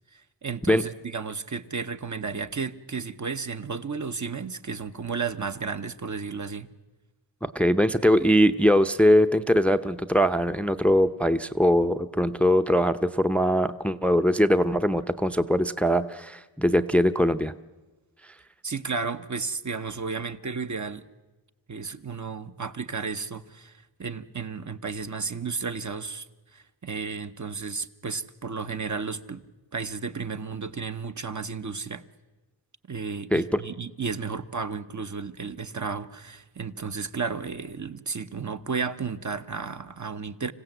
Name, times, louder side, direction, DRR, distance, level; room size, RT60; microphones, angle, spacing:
voice 1, 0.1-6.7 18.6-21.0 21.7-26.3 26.5-29.4 29.7-32.0 32.9-40.5, right 5 dB, 40° right, 9 dB, 0.9 m, -33 dB
voice 2, 7.4-17.5 33.3-33.6, equal, 5° left, 11 dB, 0.6 m, -22 dB
26.0 x 16.0 x 7.9 m, 1.2 s
wide cardioid pair, 70°, 44 cm